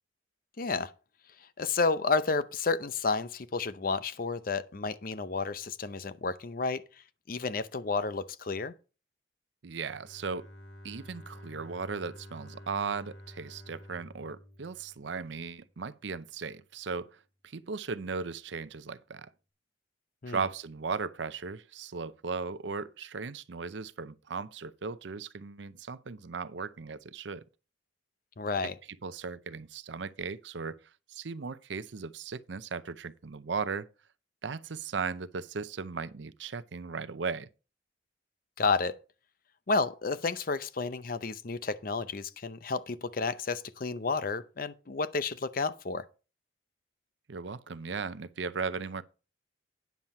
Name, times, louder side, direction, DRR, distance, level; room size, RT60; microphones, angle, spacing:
voice 1, 0.6-0.9 1.6-6.8 7.3-8.7 20.2-20.4 28.4-28.8 38.6-39.0 39.7-46.0, left 4 dB, 50° left, 0.6 m, -31 dB
voice 2, 9.6-10.5 10.8-19.3 20.3-27.4 29.0-30.8 31.1-33.9 34.4-37.5 47.3-49.0, right 5 dB, 75° right, 0.6 m, -37 dB
Bowed string instrument, 9.8-15.7, equal, 90° left, 2.1 m, -50 dB
9.5 x 7.3 x 4.2 m
head